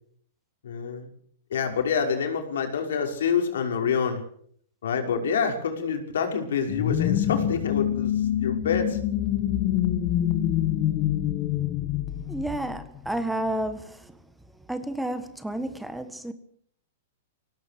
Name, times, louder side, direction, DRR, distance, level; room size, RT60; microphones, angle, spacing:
voice 1, 0.6-1.1 1.5-4.2 4.8-9.0, left 6 dB, 85° left, 5.9 m, -27 dB
sound 1, 6.7-13.1, left 11 dB, 35° left, 1.9 m, -26 dB
voice 2, 12.3-14.1 14.7-16.3, right 1 dB, 5° right, 1.6 m, -31 dB
23.5 x 18.5 x 6.9 m
hypercardioid pair, 155°, 0 cm